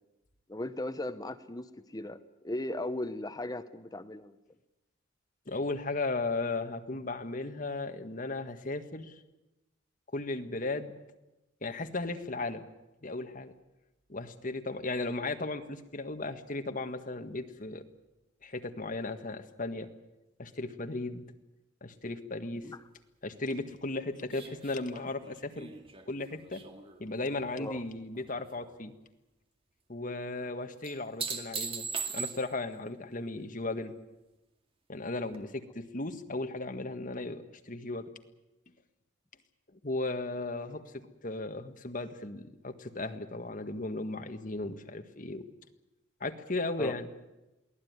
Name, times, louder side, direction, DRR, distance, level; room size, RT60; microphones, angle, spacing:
voice 1, 0.5-4.4 22.6-22.8 27.6-27.8 46.8-47.0, left 1 dB, 20° left, 11 dB, 0.9 m, -37 dB
voice 2, 5.5-9.1 10.1-11.0 11.6-12.6 13.0-13.5 14.1-17.8 18.4-19.9 20.4-21.2 21.8-22.7 23.2-25.7 26.1-26.7 27.0-28.9 29.9-31.9 32.1-33.9 34.9-38.1 39.8-40.8 41.2-45.5 46.2-47.1, left 2 dB, 45° left, 7 dB, 1.7 m, -36 dB
sound 1, 24.3-27.8 28.1-28.8 30.8-32.7 35.3-35.4, right 5 dB, 30° right, 2.2 m, -40 dB
23.0 x 16.5 x 9.6 m, 0.99 s
head